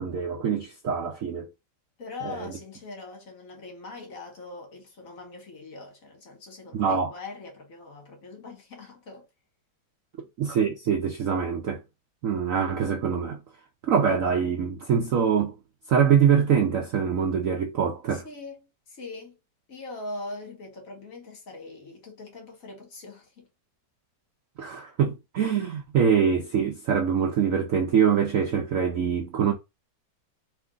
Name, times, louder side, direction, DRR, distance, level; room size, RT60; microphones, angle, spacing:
voice 1, 0.0-1.5 2.2-2.5 6.7-7.1 10.4-11.8 12.2-13.4 13.9-15.6 15.9-18.2 24.6-29.5, right 7 dB, 65° right, 0.8 m, -24 dB
voice 2, 2.0-9.3 18.1-19.4 19.7-23.5, left 3 dB, 50° left, 1.5 m, -41 dB
3.4 x 3.1 x 3.8 m
omnidirectional pair, 2.0 m